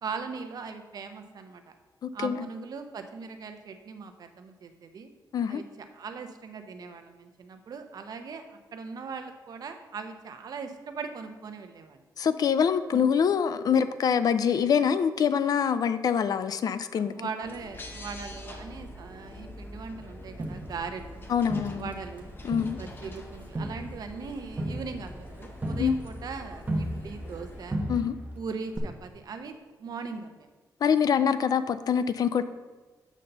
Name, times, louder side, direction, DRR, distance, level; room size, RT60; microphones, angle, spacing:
voice 1, 0.0-1.7 2.1-5.1 5.5-5.6 5.9-8.5 8.7-12.0 12.9-13.0 16.9-21.2 21.8-22.3 22.7-27.8 28.4-30.5, right 5 dB, 60° right, 7 dB, 0.8 m, -39 dB
voice 2, 2.0-2.5 5.3-5.6 12.2-17.1 21.3-21.9 22.4-22.8 25.8-25.9 27.9-28.1 30.8-32.4, left 7 dB, 60° left, 12 dB, 0.4 m, -25 dB
sound 1, 17.4-27.7, left 1 dB, 30° left, 0.8 m, -45 dB
Crowd, 20.4-22.2 22.5-27.4 27.7-28.4 28.8-28.9, right 1 dB, 20° right, 1.1 m, -35 dB
7.3 x 4.0 x 6.7 m, 1.3 s
wide cardioid pair, 135°, 7 cm